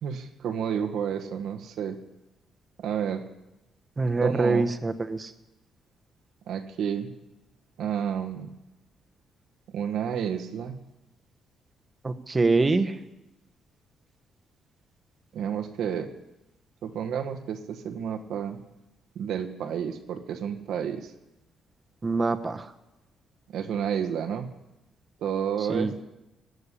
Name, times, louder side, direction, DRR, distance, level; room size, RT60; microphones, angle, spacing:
voice 1, 0.0-2.0 2.8-3.3 4.2-4.7 6.5-7.1 7.8-8.5 9.7-10.8 15.3-16.1 16.8-18.6 19.1-21.1 23.5-24.5 25.2-26.0, right 8 dB, 80° right, 6 dB, 1.5 m, -30 dB
voice 2, 4.0-5.3 12.0-13.0 22.0-22.7 25.7-25.9, right 3 dB, 25° right, 8 dB, 1.1 m, -24 dB
17.0 x 6.7 x 10.0 m, 0.96 s
cardioid pair, 90°, 0 cm